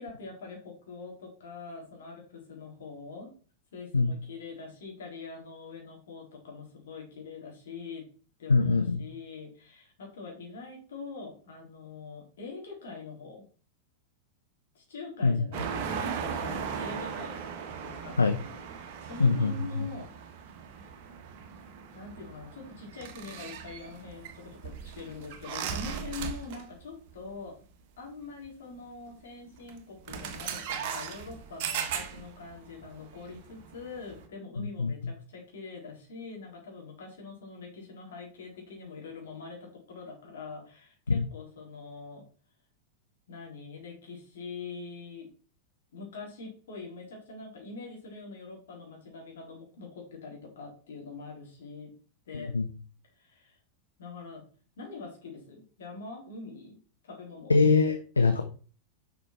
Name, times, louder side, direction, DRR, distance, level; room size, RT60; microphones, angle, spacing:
voice 1, 0.0-3.3 3.7-8.1 8.4-13.4 14.7-17.4 17.8-20.1 21.9-27.6 28.0-42.3 43.3-45.3 45.9-51.9 52.3-52.6 53.0-53.6 54.0-54.5 54.8-56.8 57.0-57.5, left 4 dB, 60° left, 0 dB, 3.7 m, -44 dB
voice 2, 8.5-9.1 15.2-15.5 18.2-18.4 19.2-19.9 34.6-35.1 41.1-41.3 52.3-52.7 57.5-58.4, left 4 dB, 80° left, 7 dB, 0.8 m, -24 dB
sound 1, 15.5-26.8 27.1-27.3 28.4-28.5 29.5-29.7 30.1-34.3, right 7 dB, 45° right, 1.3 m, -38 dB
7.0 x 6.0 x 4.6 m, 0.39 s
figure-of-eight pair, 90°, 0 cm